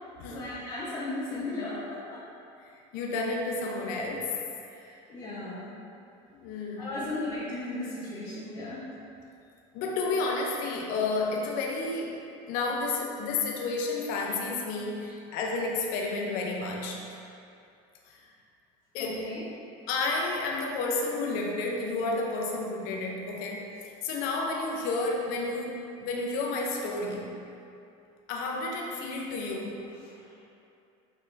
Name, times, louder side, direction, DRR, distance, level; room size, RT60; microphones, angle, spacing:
voice 1, 0.3-2.2 4.7-5.7 6.5-8.8 15.0-15.1 19.0-19.4 30.0-30.4, left 2 dB, 30° left, -9 dB, 1.4 m, -36 dB
voice 2, 2.9-4.4 6.3-7.0 9.7-12.2 12.5-17.0 18.1-18.2 18.9-19.3 19.9-27.3 28.3-29.8, left 3 dB, 65° left, 0 dB, 1.0 m, -31 dB
7.9 x 5.3 x 2.8 m, 2.6 s
cardioid pair, 135°, 16 cm